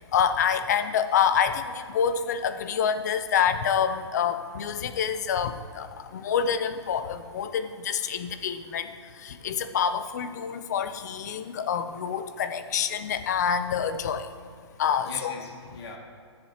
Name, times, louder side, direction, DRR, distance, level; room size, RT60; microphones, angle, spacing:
voice 1, 0.0-5.9 6.1-8.9 9.2-14.3 14.8-15.3, left 7 dB, 35° left, 10 dB, 0.5 m, -27 dB
voice 2, 14.7-16.0, left 3 dB, 60° left, -1 dB, 2.1 m, -43 dB
20.0 x 7.4 x 2.9 m, 2.2 s
hypercardioid pair, 165°, 15 cm